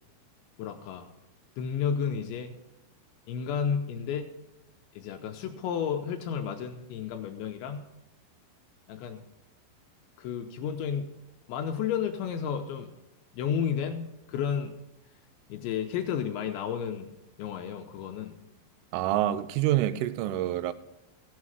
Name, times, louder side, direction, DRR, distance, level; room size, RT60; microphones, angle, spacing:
voice 1, 0.6-1.1 1.6-2.5 3.3-4.3 5.0-7.8 8.9-9.2 10.2-11.1 11.5-12.9 13.3-14.7 15.5-17.1 17.4-18.3, left 7 dB, 85° left, 2.8 m, -32 dB
voice 2, 18.9-20.7, right 13 dB, 85° right, 3.1 m, -27 dB
15.0 x 7.4 x 6.3 m
omnidirectional pair, 5.8 m